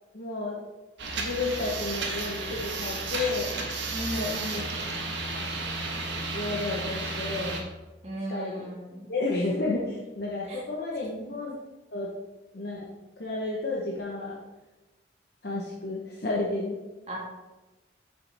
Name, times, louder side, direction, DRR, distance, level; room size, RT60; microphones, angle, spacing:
voice 1, 0.1-0.6 1.2-3.5 4.1-4.6 6.3-7.7 8.3-8.5 9.1-11.6 11.9-12.1 12.5-12.9 13.2-14.4 15.4-16.8, left 2 dB, 60° left, -3 dB, 1.0 m, -31 dB
sound 1, 1.0-7.6, right 3 dB, 85° right, 1.3 m, -33 dB
voice 2, 3.9-4.8 8.0-9.1 10.5-10.6 17.1-17.2, right 1 dB, 35° right, -3 dB, 1.9 m, -36 dB
7.3 x 6.7 x 3.4 m, 1.1 s
head